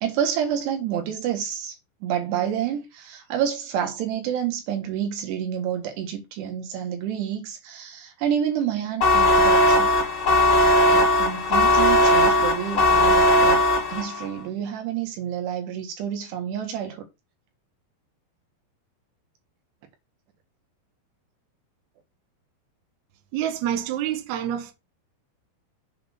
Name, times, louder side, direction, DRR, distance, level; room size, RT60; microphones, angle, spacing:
voice 1, 0.0-1.8 2.0-10.0 10.9-13.6 13.9-17.1, right 9 dB, 80° right, 3.7 m, -29 dB
sound 1, 9.0-14.3, left 1 dB, 90° left, 0.9 m, -18 dB
voice 2, 23.3-24.7, right 10 dB, 60° right, 2.2 m, -27 dB
7.7 x 3.9 x 6.0 m
omnidirectional pair, 4.8 m